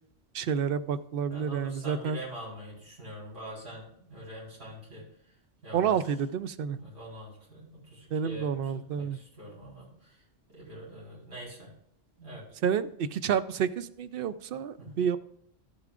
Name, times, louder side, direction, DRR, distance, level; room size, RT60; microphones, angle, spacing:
voice 1, 0.3-2.2 5.7-6.8 8.1-9.2 12.6-15.2, right 7 dB, 60° right, 13 dB, 0.6 m, -29 dB
voice 2, 1.3-5.0 5.6-6.1 6.7-10.2 10.5-11.7 12.2-12.4 14.8-15.0, right 1 dB, 80° right, -6 dB, 4.8 m, -44 dB
13.5 x 8.2 x 2.5 m, 0.69 s
omnidirectional pair, 1.3 m